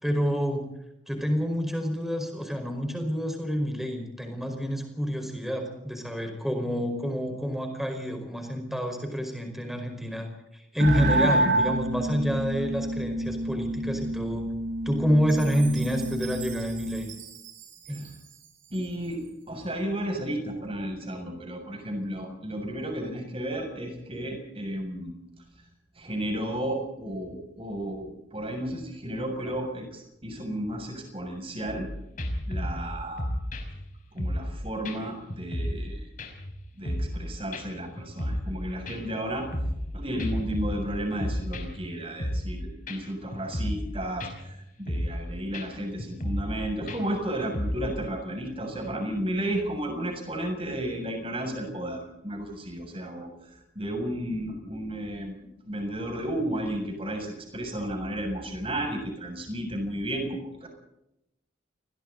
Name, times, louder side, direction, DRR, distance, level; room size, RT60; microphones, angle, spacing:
voice 1, 0.0-0.7 1.1-14.4 14.8-17.1 17.9-18.0 29.4-29.5, equal, ahead, 4 dB, 4.9 m, -28 dB
sound 1, 10.8-17.2, right 1 dB, 60° right, 3.9 m, -28 dB
Chime, 15.3-19.5, right 11 dB, 85° right, 5.7 m, -46 dB
voice 2, 18.7-25.1 26.0-31.9 32.5-33.3 34.1-36.1 36.8-39.5 39.9-53.3 53.8-55.3 55.6-60.7, right 1 dB, 30° right, 3 dB, 7.1 m, -33 dB
sound 2, 31.7-31.9 32.2-34.6 34.8-35.0 35.3-35.9 36.2-37.2 37.5-37.6 38.0-38.6 38.9-39.9 40.2-41.9 42.2-42.6 42.9-43.0 43.3-43.9 44.2-44.5 44.9-45.2 45.5-45.7 46.0-46.6 46.9-47.9, equal, 45° left, 5.4 m, -32 dB
30.0 x 21.5 x 4.1 m, 0.84 s
head